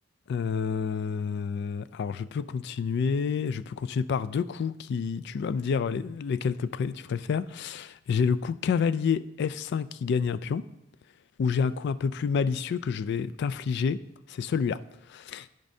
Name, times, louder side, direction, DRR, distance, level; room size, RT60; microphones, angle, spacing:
voice 1, 0.3-10.6 11.4-14.0 14.3-14.8 15.1-15.5, left 6 dB, 60° left, 0.3 m, -28 dB
13.5 x 5.3 x 2.7 m
head